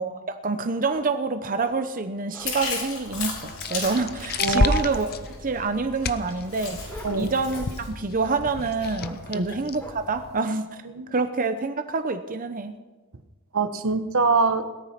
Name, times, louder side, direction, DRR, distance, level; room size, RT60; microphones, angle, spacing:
voice 1, 0.0-5.1 5.4-10.8 11.1-12.7, right 4 dB, 40° right, 8 dB, 0.8 m, -27 dB
sound 1, 0.9-1.1 1.6-1.8 2.3-2.6 3.1-3.9 4.9-5.5 6.2-7.7 8.2-8.5 9.0-9.2 9.8-10.0, right 1 dB, 10° left, 3.7 m, -45 dB
Chewing mastication, 2.4-7.9, left 4 dB, 85° left, 6.5 m, -36 dB
sound 2, 3.1-10.4, left 3 dB, 50° left, 0.7 m, -31 dB
voice 2, 4.4-4.8 7.0-7.3 9.3-9.5 10.9-11.1 13.5-14.7, right 4 dB, 75° right, 10 dB, 1.1 m, -23 dB
17.5 x 13.5 x 5.9 m, 1.2 s
head